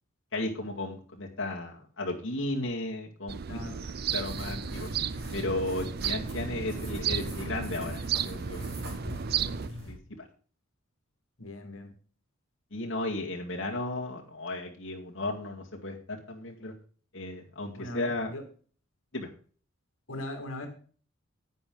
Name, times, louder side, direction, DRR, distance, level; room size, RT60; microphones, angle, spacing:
voice 1, 0.3-3.6 4.1-4.9 5.3-8.8 9.3-9.4 9.9-10.0 12.7-16.7 17.1-18.3 19.1-19.3, left 2 dB, 60° left, -1 dB, 2.2 m, -34 dB
sound 1, 3.3-9.7, right 8 dB, 45° right, 0.4 m, -34 dB
voice 2, 3.5-3.8 11.4-11.9 17.8-18.4 20.1-20.7, left 1 dB, 80° left, 5 dB, 2.2 m, -39 dB
sound 2, 4.1-9.9, equal, 65° right, 6.1 m, -41 dB
10.5 x 9.1 x 3.9 m, 0.43 s
head